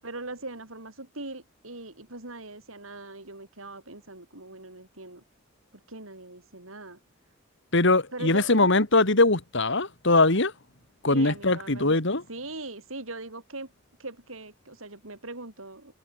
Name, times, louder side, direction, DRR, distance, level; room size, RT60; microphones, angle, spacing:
voice 1, 0.0-5.2 5.9-7.0 8.1-8.7 11.1-12.0 12.3-13.7 14.0-15.9, right 2 dB, 80° right, 6.8 m, -40 dB
voice 2, 7.7-10.5 11.0-12.2, left 2 dB, 60° left, 3.0 m, -21 dB
open air
head